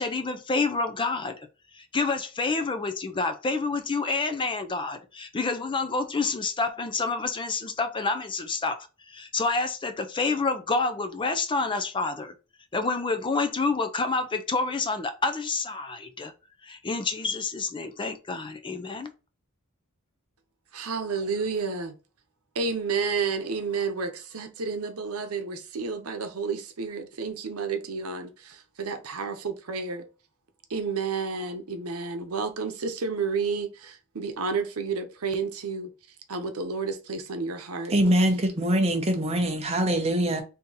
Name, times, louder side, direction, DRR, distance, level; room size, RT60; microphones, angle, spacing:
voice 1, 0.0-1.4 1.7-12.3 12.7-16.3 16.6-19.1, left 3 dB, 20° left, 0.4 m, -28 dB
voice 2, 20.7-21.9 22.5-30.0 30.7-35.9 36.3-38.0, right 5 dB, 90° right, 0.8 m, -31 dB
voice 3, 37.9-40.4, right 1 dB, 30° right, 0.8 m, -23 dB
3.6 x 2.8 x 4.0 m
head